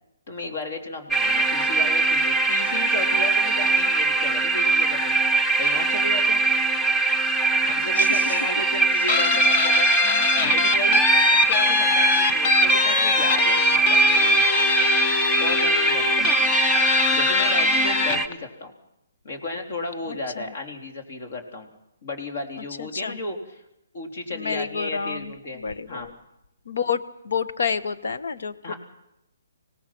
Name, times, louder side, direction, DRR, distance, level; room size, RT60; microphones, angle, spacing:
voice 1, 0.3-5.2 5.6-6.4 7.6-9.9 10.5-14.5 15.4-16.6 17.1-18.7 19.2-21.7 22.0-23.4 23.9-26.1 28.6-28.7, left 2 dB, 55° left, 4 dB, 3.7 m, -34 dB
sound 1, 1.1-18.3, right 3 dB, 5° left, 1.0 m, -22 dB
voice 2, 7.8-8.4 9.3-9.4 10.0-10.8 12.9-13.0 16.2-16.3 17.5-18.1 20.1-20.5 22.8-23.2 24.3-26.1 26.6-28.7, left 6 dB, 70° left, 12 dB, 1.2 m, -31 dB
Guitar, 9.1-18.3, left 5 dB, 35° left, 1.2 m, -23 dB
25.0 x 18.0 x 6.0 m, 0.85 s
hypercardioid pair, 145°, 0 cm